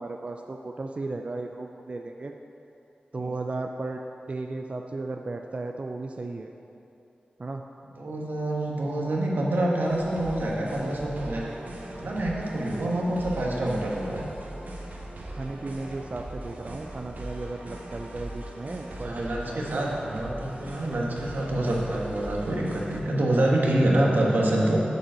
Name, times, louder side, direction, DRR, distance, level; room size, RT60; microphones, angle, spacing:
voice 1, 0.0-2.3 3.1-4.0 4.3-6.5 7.4-7.6 15.4-19.9, right 2 dB, 40° right, 3 dB, 0.4 m, -35 dB
voice 2, 8.0-11.4 12.0-14.2 19.0-24.8, right 1 dB, 85° right, -3 dB, 1.5 m, -26 dB
sound 1, 9.8-23.0, right 1 dB, 65° right, 1.2 m, -40 dB
8.1 x 5.4 x 7.5 m, 2.9 s
wide cardioid pair, 95°, 3 cm